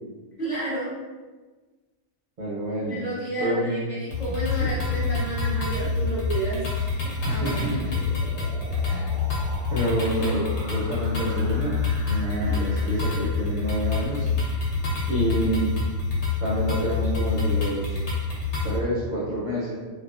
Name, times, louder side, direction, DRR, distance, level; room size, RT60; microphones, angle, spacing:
voice 1, 0.4-0.9 2.8-7.8 12.4-12.6, right 1 dB, 45° left, -8 dB, 0.6 m, -31 dB
voice 2, 2.4-3.0 3.4-3.9 4.6-4.7 7.2-7.9 8.8-9.1 9.7-14.3 15.1-15.7 16.4-18.0 18.6-19.7, right 1 dB, 55° right, -8 dB, 0.6 m, -28 dB
sound 1, 4.1-18.8, left 4 dB, 70° left, 1.0 m, -27 dB
sound 2, 6.9-14.6, right 2 dB, 80° right, 0.9 m, -43 dB
2.4 x 2.3 x 2.3 m, 1.3 s
omnidirectional pair, 1.2 m